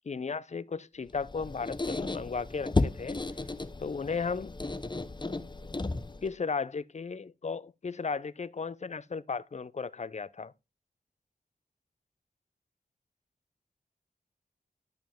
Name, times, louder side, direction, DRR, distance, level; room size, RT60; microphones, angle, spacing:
voice 1, 0.1-3.2 3.8-4.6 6.2-10.5, left 5 dB, 50° left, 0.5 m, -35 dB
Squeak, 1.1-6.3, left 2 dB, 30° left, 0.8 m, -34 dB
11.5 x 5.3 x 3.5 m
wide cardioid pair, 65°, 15 cm